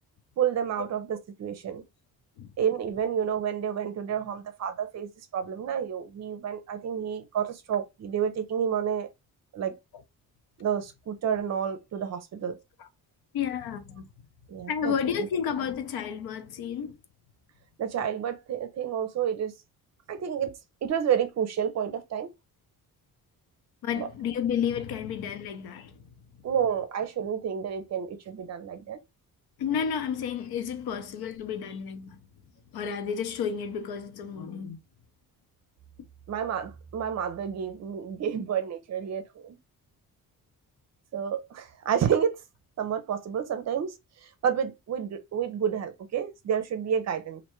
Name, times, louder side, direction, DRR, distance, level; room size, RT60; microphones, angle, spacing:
voice 1, 0.4-1.8 2.6-9.1 9.5-9.8 10.6-12.6 14.5-14.9 17.8-19.5 20.1-22.3 24.0-24.1 26.4-29.0 36.3-39.6 41.1-42.4 42.8-43.9 44.2-47.4, right 8 dB, 45° right, 0.6 m, -30 dB
voice 2, 13.3-14.1 14.7-17.0 23.8-26.0 29.6-32.2 32.7-34.8, left 7 dB, 90° left, 0.7 m, -31 dB
3.2 x 2.6 x 3.0 m
cardioid pair, 170°, 36 cm